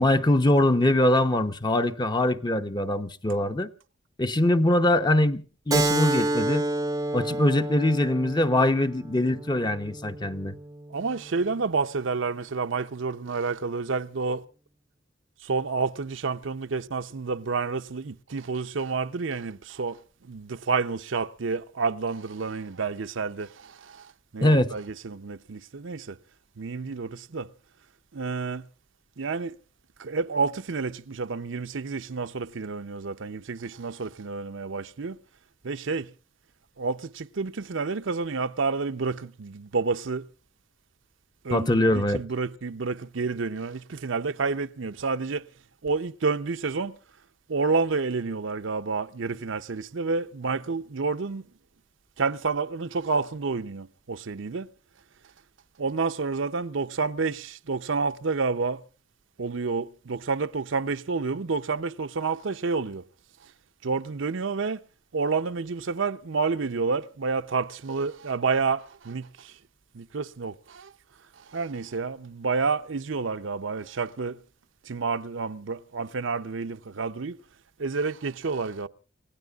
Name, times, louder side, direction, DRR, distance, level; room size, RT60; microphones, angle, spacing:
voice 1, 0.0-3.7 4.2-6.7 7.1-10.6 24.4-24.7 41.5-42.2, left 1 dB, 20° left, 0.8 m, -23 dB
Keyboard (musical), 5.7-10.8, right 2 dB, 20° right, 0.7 m, -29 dB
voice 2, 10.9-14.4 15.4-20.0 20.3-23.7 24.3-26.1 26.6-27.5 28.1-28.6 29.2-29.6 30.0-35.2 35.6-36.1 36.8-40.3 41.4-45.4 45.8-47.0 47.5-51.4 52.2-54.7 55.8-58.8 59.4-63.0 63.8-64.8 65.1-69.5 69.9-70.9 71.5-74.4 74.9-77.4 77.8-78.9, right 4 dB, 65° right, 0.7 m, -29 dB
29.5 x 16.5 x 2.4 m
head